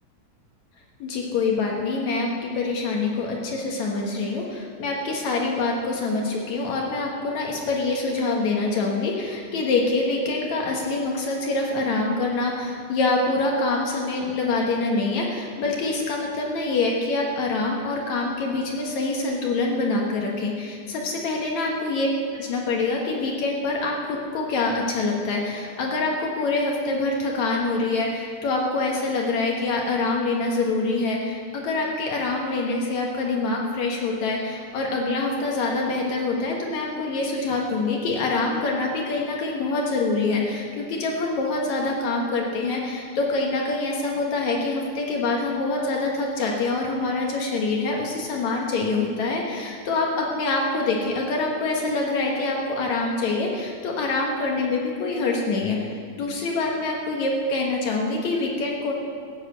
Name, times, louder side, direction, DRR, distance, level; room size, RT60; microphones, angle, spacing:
voice 1, 1.0-22.1 22.3-58.9, left 3 dB, 70° left, -1 dB, 2.6 m, -25 dB
16.5 x 7.4 x 7.9 m, 2.2 s
omnidirectional pair, 3.4 m